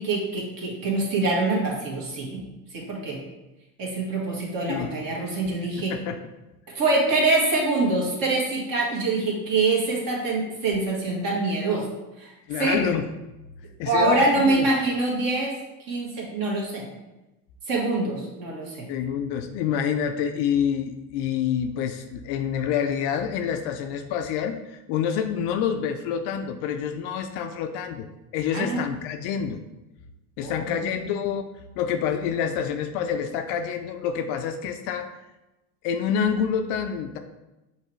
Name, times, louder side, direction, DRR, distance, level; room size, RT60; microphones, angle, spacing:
voice 1, 0.0-2.4 2.7-3.2 3.8-6.0 6.7-11.9 12.2-12.3 12.6-12.8 13.9-15.6 15.9-16.9 17.7-18.9 28.5-28.8 30.4-31.0, right 2 dB, 40° right, -2 dB, 1.6 m, -25 dB
voice 2, 5.8-6.2 12.5-13.1 13.8-14.7 18.9-28.1 28.3-29.6 30.4-31.5 31.8-35.2 35.8-37.2, left 8 dB, 55° left, 7 dB, 0.5 m, -27 dB
5.5 x 3.0 x 3.1 m, 1.0 s
supercardioid pair, 100°, 49 cm